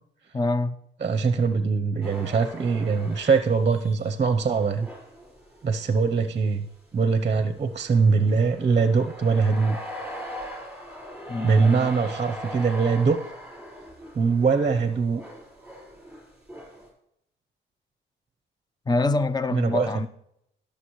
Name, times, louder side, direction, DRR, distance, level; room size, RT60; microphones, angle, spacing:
voice 1, 0.3-0.8 11.3-11.9 18.9-20.1, left 2 dB, 20° left, 0.7 m, -25 dB
voice 2, 1.0-4.9 5.6-6.6 6.9-9.8 11.4-13.2 14.2-15.2 19.5-19.9, right 5 dB, 35° right, 0.7 m, -22 dB
sound 1, 2.0-6.1 6.6-6.7 7.6-16.9, equal, 5° right, 4.9 m, -40 dB
17.0 x 6.8 x 3.1 m
cardioid pair, 90°, 20 cm